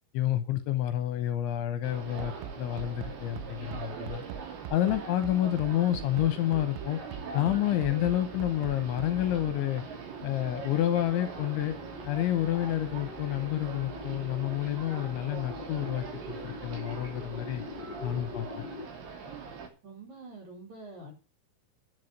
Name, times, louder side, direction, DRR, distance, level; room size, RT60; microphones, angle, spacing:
voice 1, 0.1-4.2 4.7-7.0 7.3-9.8 10.2-11.7 12.1-17.6 18.0-18.6, left 13 dB, 75° left, 10 dB, 3.0 m, -29 dB
sound 1, 1.8-19.7, right 6 dB, 65° right, 5.1 m, -42 dB
Bass drum, 2.2-9.6, right 8 dB, 80° right, 3.2 m, -41 dB
sound 2, 6.8-18.9, left 4 dB, 40° left, 1.4 m, -46 dB
voice 2, 19.8-21.1, right 2 dB, 35° right, 0 dB, 5.6 m, -46 dB
11.0 x 9.4 x 6.6 m, 0.33 s
omnidirectional pair, 5.8 m